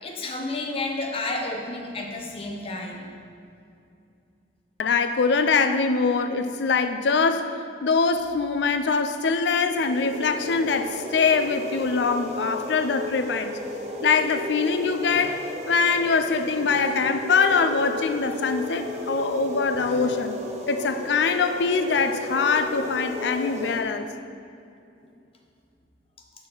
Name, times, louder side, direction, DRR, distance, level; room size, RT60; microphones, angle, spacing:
voice 1, 0.0-3.1, left 2 dB, 35° left, 1 dB, 0.8 m, -31 dB
voice 2, 4.8-13.6 14.0-20.3 20.7-24.1, left 4 dB, 75° left, 9 dB, 0.4 m, -23 dB
sound 1, 9.6-23.8, left 1 dB, 40° right, 0.6 m, -34 dB
6.7 x 5.8 x 4.0 m, 2.5 s
head